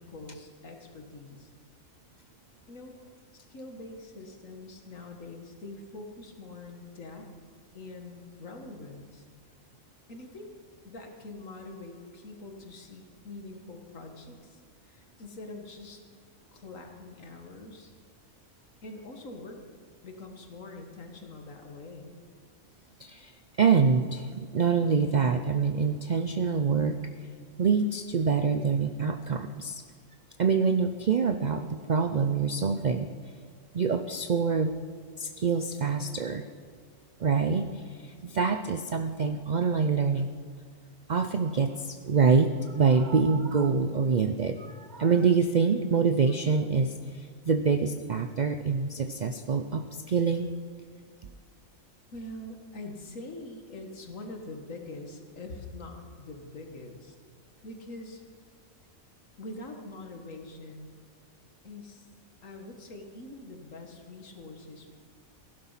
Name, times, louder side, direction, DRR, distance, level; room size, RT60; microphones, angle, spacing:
voice 1, 0.0-1.5 2.7-2.9 3.5-7.3 7.7-9.3 10.1-10.5 10.8-16.0 16.5-17.9 18.8-19.6 20.0-22.2 52.1-57.2 57.6-58.2 59.4-60.9 61.6-62.1 62.4-64.9, left 2 dB, 65° left, 3 dB, 2.0 m, -44 dB
voice 2, 23.0-23.3 23.6-27.0 27.6-29.8 30.4-33.1 33.7-34.8 35.2-36.4 37.2-40.3 41.1-50.5, right 5 dB, 65° right, 9 dB, 0.4 m, -26 dB
16.0 x 11.5 x 5.7 m, 2.1 s
omnidirectional pair, 1.5 m